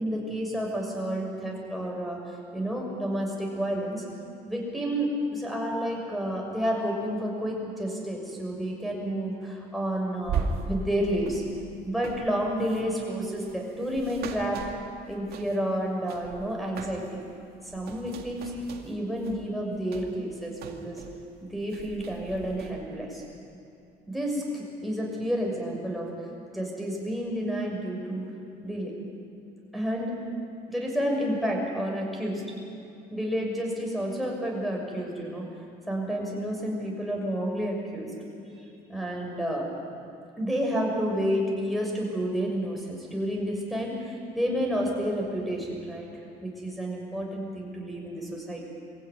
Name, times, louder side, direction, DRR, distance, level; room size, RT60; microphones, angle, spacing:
voice 1, 0.0-2.2 2.5-4.0 4.5-11.4 11.8-14.6 15.1-17.0 17.6-18.5 18.8-21.0 21.5-23.2 24.1-26.1 26.5-28.2 28.6-28.9 29.7-30.1 30.7-32.4 33.1-35.5 35.9-38.1 38.5-39.6 40.4-46.1 46.4-48.6, equal, ahead, -2 dB, 6.4 m, -30 dB
sound 1, 10.2-15.8 16.1-17.2 17.5-21.2 21.5-22.7, right 5 dB, 70° right, 2.4 m, -38 dB
23.5 x 15.5 x 9.6 m, 2.7 s
cardioid pair, 110°, 17 cm